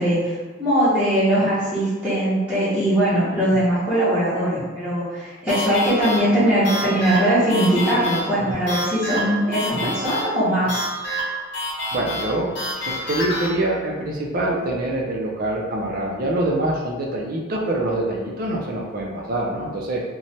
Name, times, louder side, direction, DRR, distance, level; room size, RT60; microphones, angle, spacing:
voice 1, 0.0-10.8, equal, 5° right, -14 dB, 0.8 m, -20 dB
sound 1, 5.5-13.5, equal, 55° left, 0.6 m, -28 dB
voice 2, 11.9-12.5 12.8-20.0, right 1 dB, 45° right, -1 dB, 0.4 m, -25 dB
3.0 x 2.1 x 2.7 m, 1.3 s
head